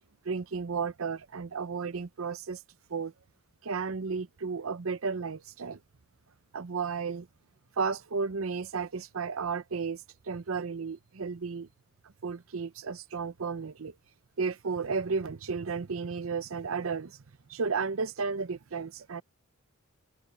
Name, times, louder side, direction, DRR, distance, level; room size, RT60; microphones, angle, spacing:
voice 1, 0.2-2.6 2.9-3.1 3.6-5.8 6.5-7.3 7.8-11.7 12.2-13.9 14.4-17.2 17.5-19.2, right 5 dB, 70° right, 0.7 m, -33 dB
head